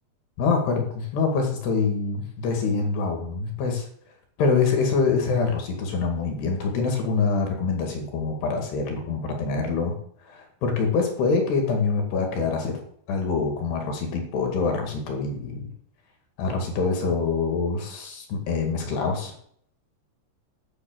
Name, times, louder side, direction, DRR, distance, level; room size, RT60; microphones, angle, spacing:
voice 1, 0.4-3.9 4.4-10.0 10.3-12.8 13.1-15.6 16.4-19.3, left 4 dB, 80° left, 3 dB, 4.3 m, -25 dB
9.9 x 6.8 x 7.9 m, 0.63 s
omnidirectional pair, 4.7 m